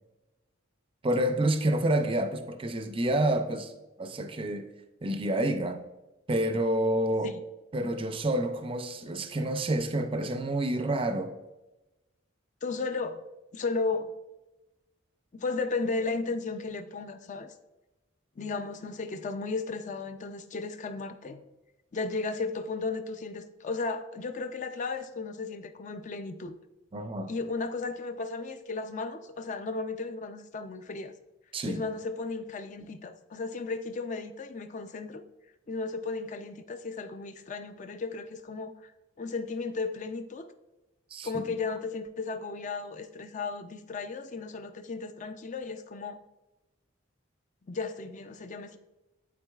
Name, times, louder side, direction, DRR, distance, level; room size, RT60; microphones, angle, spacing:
voice 1, 1.0-3.7 4.0-4.7 5.0-5.9 6.3-7.3 7.7-11.4 26.9-27.3 31.5-31.9 41.1-41.4, right 1 dB, 25° right, 0.4 m, -28 dB
voice 2, 12.6-13.2 13.5-14.1 15.3-17.5 18.4-21.4 21.9-26.5 27.3-31.1 31.7-35.2 35.7-38.9 39.2-40.5 41.2-46.2 47.7-48.8, left 3 dB, 40° left, 0.4 m, -35 dB
12.0 x 4.0 x 2.3 m
head